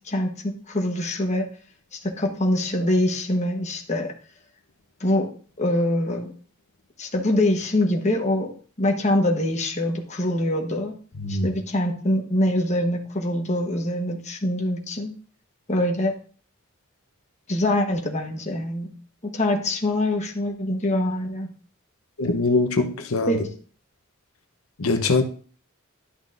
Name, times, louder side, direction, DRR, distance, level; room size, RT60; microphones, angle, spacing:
voice 1, 0.0-1.5 1.9-4.1 5.0-5.3 5.6-6.3 7.0-8.5 8.8-10.9 11.3-15.1 15.7-16.1 17.5-18.9 19.3-21.5 23.3-23.5, left 1 dB, 35° left, 2 dB, 1.2 m, -24 dB
voice 2, 22.2-23.4 24.8-25.2, left 3 dB, 90° left, 6 dB, 0.9 m, -22 dB
11.5 x 6.1 x 2.6 m, 0.42 s
head